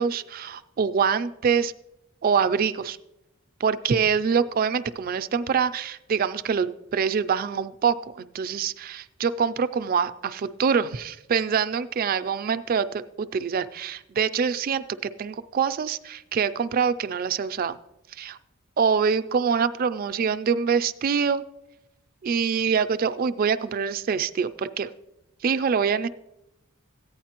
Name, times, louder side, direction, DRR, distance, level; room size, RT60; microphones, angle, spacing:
voice 1, 0.0-1.7 2.2-3.0 3.6-17.8 18.1-18.4 18.8-21.4 22.2-24.9 25.4-26.1, right 6 dB, 45° right, 11 dB, 0.3 m, -25 dB
14.5 x 9.1 x 2.9 m, 0.89 s
head